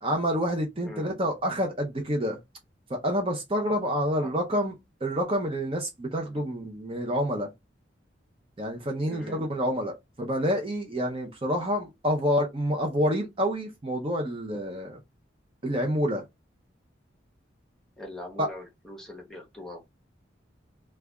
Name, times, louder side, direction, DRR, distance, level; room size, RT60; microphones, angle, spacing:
voice 1, 0.0-2.4 2.9-4.7 5.0-7.5 8.6-15.0 15.6-16.2 18.4-18.5, equal, 30° right, 0.6 m, -28 dB
voice 2, 9.1-9.4 18.0-19.9, left 1 dB, 5° left, 0.9 m, -42 dB
3.2 x 2.3 x 3.4 m
head